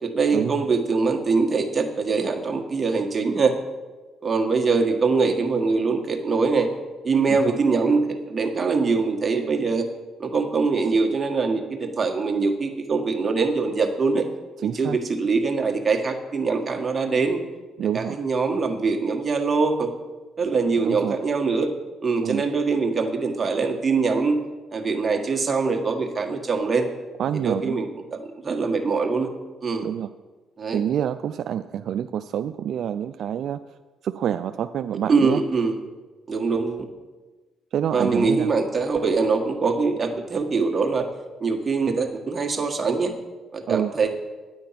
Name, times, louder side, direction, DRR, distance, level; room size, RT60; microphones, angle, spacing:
voice 1, 0.0-3.5 4.2-6.7 7.0-9.9 10.2-14.3 14.6-17.4 17.9-19.9 20.4-21.7 22.0-24.4 24.7-26.9 27.3-29.3 29.6-29.9 30.6-30.8 35.1-35.8 36.3-36.9 37.9-41.1 41.4-43.1 43.5-44.1, right 4 dB, 30° right, 2 dB, 1.6 m, -23 dB
voice 2, 14.6-15.0 17.8-18.2 20.8-21.1 22.2-22.4 27.2-27.8 29.8-30.1 30.7-33.6 34.0-35.4 37.7-38.5 43.7-43.9, right 9 dB, 70° right, 10 dB, 0.3 m, -27 dB
10.0 x 8.8 x 5.8 m, 1.3 s
cardioid pair, 90°, 0 cm